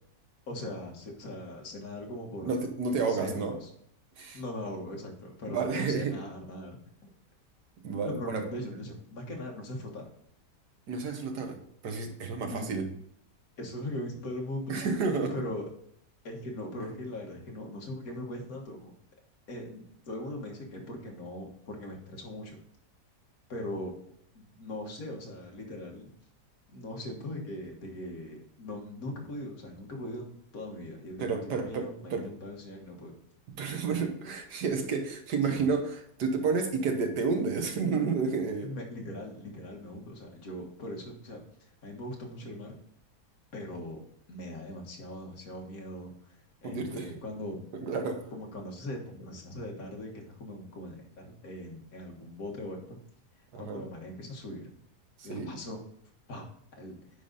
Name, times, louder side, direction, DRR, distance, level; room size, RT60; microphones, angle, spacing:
voice 1, 0.5-2.5 3.1-3.7 4.3-7.1 8.1-10.1 12.5-12.9 13.6-14.8 15.3-15.7 16.2-18.9 19.5-22.6 23.5-23.9 24.3-26.1 26.7-31.4 31.6-33.1 35.4-35.6 38.6-41.4 41.8-42.8 43.5-44.0 44.3-46.1 46.6-47.7 48.3-53.0 53.6-54.7 55.2-55.8 56.3-56.4 56.8-57.0, left 1 dB, 60° left, 0 dB, 2.0 m, -40 dB
voice 2, 2.4-3.5 4.2-4.4 5.5-6.2 7.8-8.4 10.9-12.9 14.7-15.3 31.2-32.3 33.5-38.7 46.6-47.2 47.7-48.3 53.5-53.9 55.2-55.5, right 4 dB, 75° right, 4 dB, 1.8 m, -31 dB
9.8 x 4.0 x 3.9 m, 0.68 s
omnidirectional pair, 1.8 m